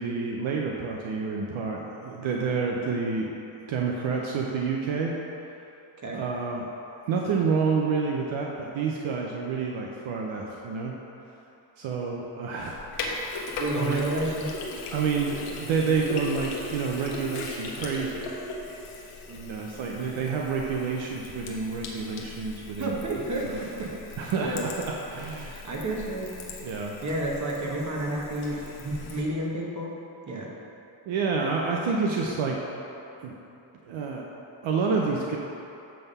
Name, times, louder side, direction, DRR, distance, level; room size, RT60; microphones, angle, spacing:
voice 1, 0.0-3.3 3.7-5.1 6.1-6.6 7.1-10.9 11.8-13.3 13.8-14.0 14.9-18.2 19.5-23.0 23.4-23.6 24.2-25.6 26.6-26.9 31.1-32.6 33.2-33.3 33.8-34.2 34.6-35.4, right 5 dB, 70° right, -1 dB, 0.8 m, -28 dB
Sink (filling or washing), 12.6-29.2, left 2 dB, 90° left, 1.0 m, -39 dB
voice 2, 13.6-14.5 19.3-19.6 19.9-20.2 22.8-23.4 23.8-23.9 24.4-24.7 25.5-26.2 27.0-29.9 30.3-30.5, right 1 dB, 35° right, -2 dB, 1.3 m, -30 dB
7.8 x 3.6 x 5.4 m, 2.9 s
cardioid pair, 80°, 49 cm